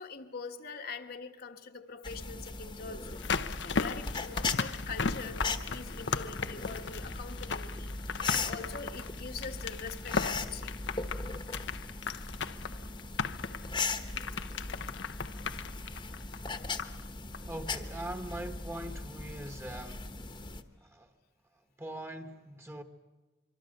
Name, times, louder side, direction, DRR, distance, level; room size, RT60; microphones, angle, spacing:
voice 1, 0.0-3.2 3.6-10.8, left 5 dB, 55° left, 1.4 m, -43 dB
sound 1, 2.0-20.6, left 3 dB, 25° left, 1.2 m, -39 dB
sound 2, 3.0-17.1 17.3-17.4, left 5 dB, 70° left, 0.8 m, -36 dB
voice 2, 17.5-20.1 20.8-21.1 21.8-22.8, right 1 dB, 15° right, 1.4 m, -41 dB
25.5 x 24.5 x 6.6 m
head